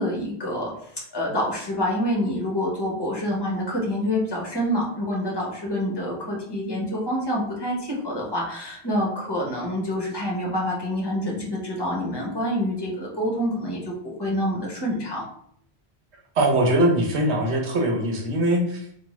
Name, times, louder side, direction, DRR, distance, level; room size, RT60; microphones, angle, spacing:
voice 1, 0.0-15.3, equal, 25° left, -3 dB, 0.9 m, -27 dB
voice 2, 16.4-19.0, right 1 dB, 85° right, 1 dB, 1.1 m, -22 dB
3.5 x 2.5 x 3.1 m, 0.67 s
omnidirectional pair, 1.1 m